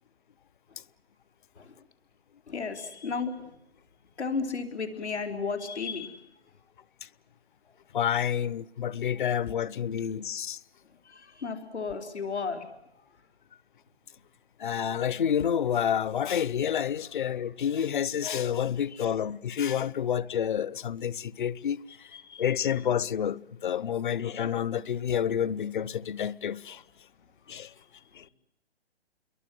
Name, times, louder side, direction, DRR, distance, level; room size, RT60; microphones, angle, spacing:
voice 1, 2.5-3.5 4.2-6.3 11.0-12.7 22.1-22.4, left 5 dB, 85° left, 4.3 m, -34 dB
voice 2, 7.9-10.6 14.6-26.8 27.5-27.7 28.1-28.3, left 9 dB, 50° left, 0.9 m, -29 dB
29.5 x 22.5 x 7.8 m
hypercardioid pair, 160°, 33 cm